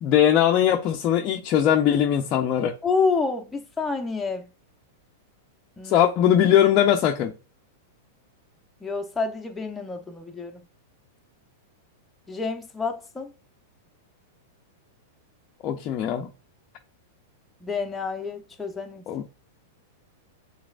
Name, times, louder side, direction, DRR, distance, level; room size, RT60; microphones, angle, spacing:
voice 1, 0.0-2.8 5.8-7.3 15.6-16.3 19.1-19.3, left 10 dB, 40° left, 0.6 m, -20 dB
voice 2, 2.8-4.5 5.8-6.0 8.8-10.6 12.3-13.3 17.6-19.0, left 4 dB, 10° left, 0.8 m, -28 dB
6.0 x 3.3 x 2.5 m
hypercardioid pair, 120°, 0 cm